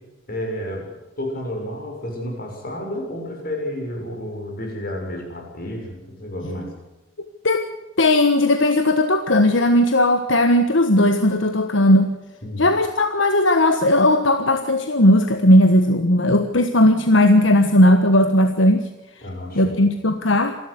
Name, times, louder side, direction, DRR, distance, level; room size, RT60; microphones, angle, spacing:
voice 1, 0.3-0.9 1.2-6.7 12.4-12.7 19.2-19.8, left 1 dB, 50° left, 2 dB, 6.7 m, -31 dB
voice 2, 8.0-12.1 12.6-18.8 19.5-20.6, left 1 dB, 75° left, 7 dB, 1.4 m, -16 dB
27.5 x 12.5 x 8.2 m, 1.0 s
head